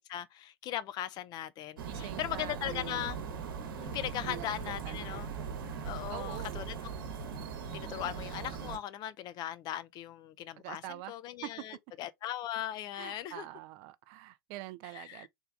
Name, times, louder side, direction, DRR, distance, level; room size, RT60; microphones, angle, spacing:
voice 1, 0.1-3.2 3.8-5.3 5.8-6.7 7.7-13.5 14.9-15.3, left 12 dB, 35° left, 0.5 m, -39 dB
voice 2, 1.8-3.0 4.2-5.1 6.1-6.6 10.6-11.1 11.4-11.5 12.9-15.3, right 17 dB, 45° right, 0.4 m, -44 dB
sound 1, 1.8-8.8, right 6 dB, 65° right, 1.1 m, -40 dB
3.6 x 3.4 x 3.3 m
figure-of-eight pair, 90°, 12 cm